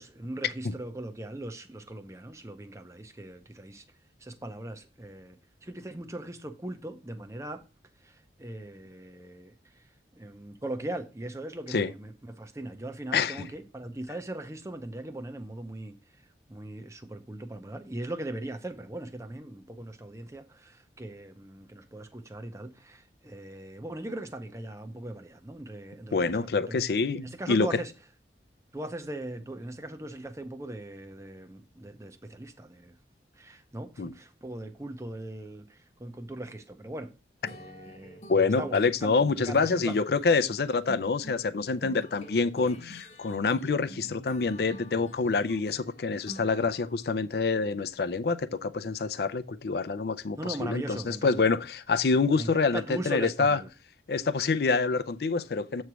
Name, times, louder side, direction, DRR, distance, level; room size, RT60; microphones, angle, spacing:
voice 1, 0.0-3.8 4.2-7.6 8.0-9.8 10.1-16.0 16.5-26.8 27.2-27.9 28.7-33.0 33.4-37.1 37.5-38.2 38.6-39.1 39.4-40.1 50.3-51.5 52.4-53.7, right 1 dB, 15° right, 0.6 m, -39 dB
voice 2, 13.1-13.5 26.1-27.8 34.0-34.1 38.3-53.6 54.1-55.8, left 4 dB, 60° left, 0.4 m, -27 dB
sound 1, 37.5-47.1, equal, 35° left, 0.9 m, -48 dB
8.0 x 3.2 x 6.0 m
head